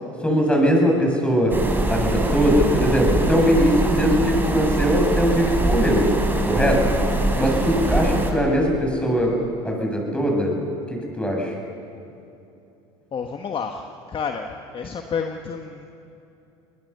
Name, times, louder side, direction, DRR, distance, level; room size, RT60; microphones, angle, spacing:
voice 1, 0.2-1.6 1.9-6.1 6.5-7.0 7.4-9.4 9.6-10.6 10.9-11.5, equal, 5° left, 0 dB, 7.1 m, -20 dB
sound 1, 1.5-8.3, right 2 dB, 15° right, 4.1 m, -23 dB
voice 2, 13.1-15.9, left 6 dB, 35° left, 5 dB, 1.5 m, -30 dB
24.0 x 20.0 x 7.0 m, 2.8 s
hypercardioid pair, 75°, 16 cm